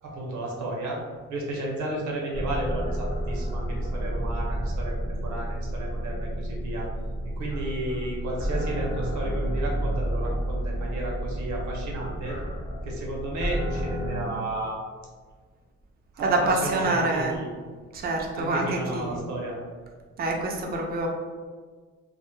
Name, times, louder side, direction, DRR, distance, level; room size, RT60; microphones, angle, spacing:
voice 1, 0.0-1.0 1.3-6.9 7.4-12.4 12.8-14.8 16.1-17.5 18.3-19.6, right 1 dB, 70° right, -2 dB, 0.7 m, -33 dB
sound 1, 2.3-14.2, right 1 dB, 35° left, 0.8 m, -30 dB
voice 2, 16.2-17.3 17.9-19.2 20.2-21.1, right 2 dB, 30° right, 1 dB, 0.4 m, -26 dB
2.1 x 2.0 x 3.0 m, 1.5 s
cardioid pair, 90°, 30 cm